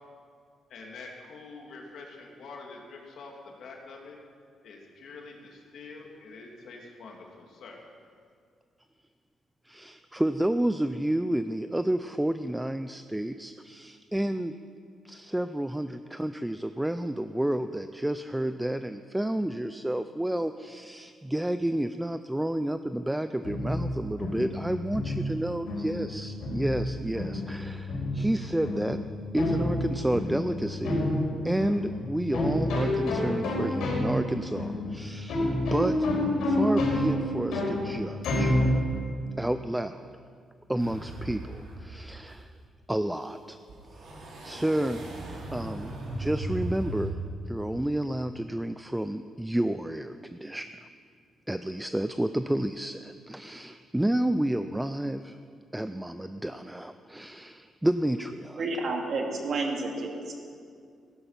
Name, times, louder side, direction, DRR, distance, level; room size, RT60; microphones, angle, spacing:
voice 1, 0.7-4.2 4.6-7.8, left 3 dB, 60° left, 0 dB, 2.5 m, -46 dB
voice 2, 9.6-14.5 15.0-29.0 29.3-31.0 31.4-35.4 35.7-36.0 36.4-38.6 39.4-40.1 40.7-42.5 42.9-43.6 44.0-44.1 44.4-45.0 45.5-47.2 47.4-50.7 51.5-55.4 55.7-58.6, right 1 dB, 5° right, 10 dB, 0.4 m, -30 dB
sound 1, 23.4-39.1, left 1 dB, 80° left, 4.6 m, -29 dB
sound 2, 40.8-41.9 42.3-42.4 43.7-47.1, right 1 dB, 65° right, 3.7 m, -37 dB
voice 3, 58.6-60.4, right 3 dB, 50° right, 1 dB, 2.3 m, -30 dB
16.0 x 12.0 x 5.8 m, 2.2 s
cardioid pair, 150°, 0 cm